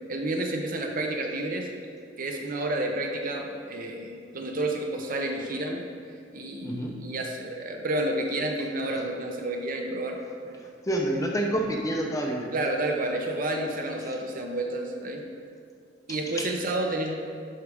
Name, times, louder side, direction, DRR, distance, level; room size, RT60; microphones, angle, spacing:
voice 1, 0.1-1.7 2.2-5.8 6.3-10.2 12.5-15.2 16.1-17.2, right 1 dB, 40° right, 2 dB, 0.7 m, -30 dB
voice 2, 6.6-6.9 10.8-12.5 16.4-16.5, right 1 dB, 15° left, 0 dB, 0.6 m, -28 dB
11.0 x 4.8 x 3.5 m, 2.2 s
head